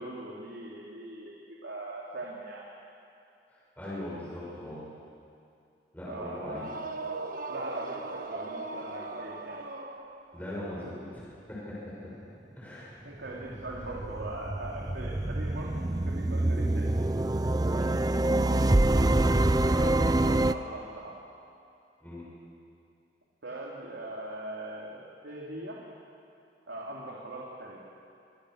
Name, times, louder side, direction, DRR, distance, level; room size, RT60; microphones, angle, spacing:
voice 1, 0.0-1.4 1.6-2.7 6.1-6.9 7.5-9.6 10.8-10.9 13.0-17.0 19.4-21.2 23.4-25.8 26.7-27.8, right 1 dB, 90° right, -3 dB, 3.2 m, -41 dB
voice 2, 3.5-4.8 5.9-6.6 10.3-11.7 12.6-13.1 17.6-18.1 22.0-22.2, left 1 dB, 10° left, -7 dB, 6.4 m, -40 dB
sound 1, 6.5-10.5, right 3 dB, 50° right, 1.2 m, -38 dB
sound 2, 13.3-20.5, right 1 dB, 20° right, 0.5 m, -26 dB
27.0 x 23.5 x 6.6 m, 2.6 s
head